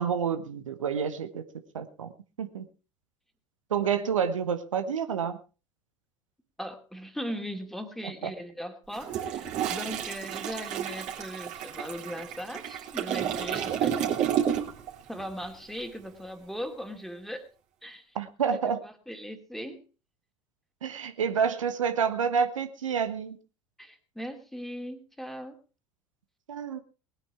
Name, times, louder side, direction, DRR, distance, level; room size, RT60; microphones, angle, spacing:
voice 1, 0.0-1.4 1.7-2.1 2.4-2.6 3.7-5.4 8.2-8.3 18.1-18.8 20.8-23.4 26.5-26.8, right 7 dB, 75° right, 9 dB, 1.2 m, -28 dB
voice 2, 6.6-14.2 15.1-17.4 17.8-18.0 18.5-19.8 23.8-25.6, equal, ahead, 6 dB, 2.5 m, -39 dB
Toilet flush, 8.9-14.9 15.2-15.4, right 9 dB, 45° right, 3.1 m, -31 dB
20.0 x 9.6 x 4.5 m, 0.34 s
figure-of-eight pair, 70°, 17 cm